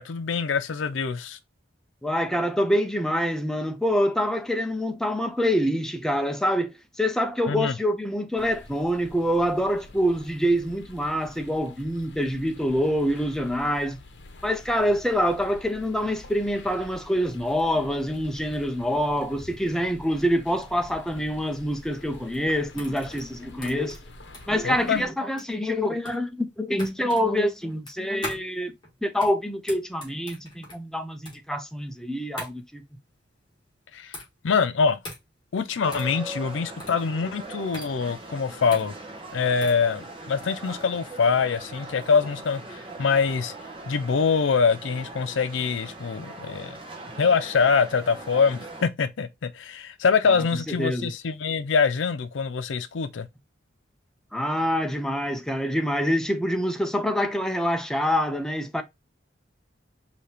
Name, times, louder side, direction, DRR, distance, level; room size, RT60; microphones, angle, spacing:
voice 1, 0.0-1.4 7.5-7.7 24.6-25.1 33.9-34.1 34.4-35.0 35.5-38.9 39.3-43.5 43.9-46.8 47.2-53.3, left 5 dB, 90° left, 0.5 m, -24 dB
voice 2, 2.0-14.0 14.4-24.0 24.5-28.7 29.0-32.8 50.7-51.1 54.3-58.8, equal, 5° left, 0.5 m, -26 dB
sound 1, 8.4-25.1, left 2 dB, 65° left, 0.8 m, -47 dB
sound 2, 22.1-39.9, left 1 dB, 25° left, 1.9 m, -42 dB
sound 3, 35.8-48.8, right 2 dB, 30° right, 1.0 m, -41 dB
4.9 x 2.8 x 2.7 m
head